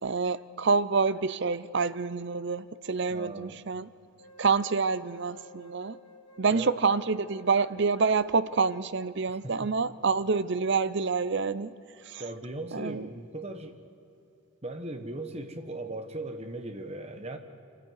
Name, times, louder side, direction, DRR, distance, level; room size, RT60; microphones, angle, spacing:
voice 1, 0.0-3.9 4.4-6.0 6.4-11.8 12.0-12.2 12.7-13.1, right 4 dB, 50° right, 15 dB, 0.6 m, -27 dB
voice 2, 3.1-3.6 6.5-6.7 9.3-9.7 12.2-13.8 14.6-17.4, right 1 dB, 30° right, 7 dB, 1.4 m, -38 dB
sound 1, 4.2-10.2, left 1 dB, 90° left, 1.8 m, -54 dB
26.0 x 14.0 x 9.6 m, 2.7 s
head